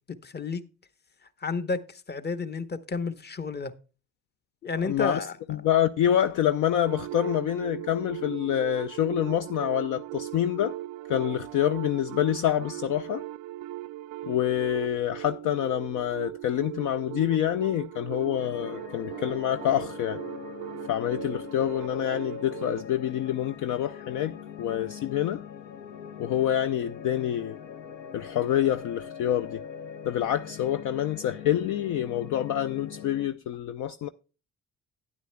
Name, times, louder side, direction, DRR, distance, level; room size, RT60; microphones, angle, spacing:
voice 1, 0.2-0.6 1.4-3.7 4.6-5.4, left 4 dB, 25° left, 0.9 m, -31 dB
voice 2, 4.8-5.2 5.5-10.7 11.1-13.2 14.2-20.2 20.9-25.4 26.2-27.6 28.1-29.6 30.0-34.1, left 11 dB, 50° left, 0.5 m, -27 dB
sound 1, 6.9-22.9, right 15 dB, 50° right, 0.4 m, -39 dB
sound 2, 18.4-33.3, left 8 dB, 75° left, 0.9 m, -42 dB
12.5 x 9.6 x 2.2 m
figure-of-eight pair, 40°, 39 cm